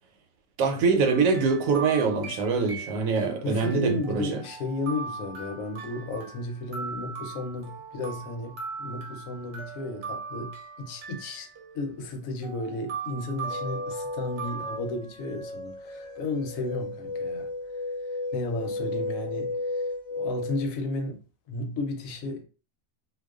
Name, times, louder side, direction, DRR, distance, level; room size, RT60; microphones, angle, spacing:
voice 1, 0.6-4.4, right 4 dB, 80° right, 1.0 m, -24 dB
sound 1, 1.0-3.3 3.6-14.8, right 5 dB, 60° right, 0.8 m, -39 dB
voice 2, 3.4-11.5 11.7-17.5 18.3-19.8 20.2-21.2 21.5-22.4, left 2 dB, 80° left, 1.0 m, -33 dB
sound 2, 13.5-20.7, left 2 dB, 50° left, 0.5 m, -34 dB
2.3 x 2.2 x 2.3 m
omnidirectional pair, 1.4 m